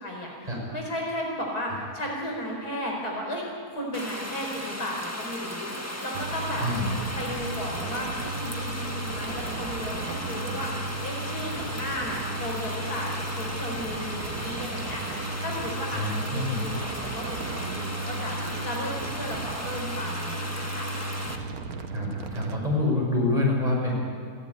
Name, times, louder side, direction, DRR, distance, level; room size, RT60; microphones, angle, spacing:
voice 1, 0.0-6.6 7.2-15.0 15.4-20.9 23.9-24.0, left 1 dB, 65° left, -1 dB, 5.0 m, -35 dB
sound 1, 3.9-21.4, left 1 dB, 10° left, 1.4 m, -36 dB
sound 2, 6.1-22.6, right 3 dB, 65° right, 1.5 m, -35 dB
voice 2, 15.9-16.7 21.9-24.0, left 2 dB, 20° right, -4 dB, 6.3 m, -26 dB
29.0 x 11.0 x 9.7 m, 2.4 s
omnidirectional pair, 1.8 m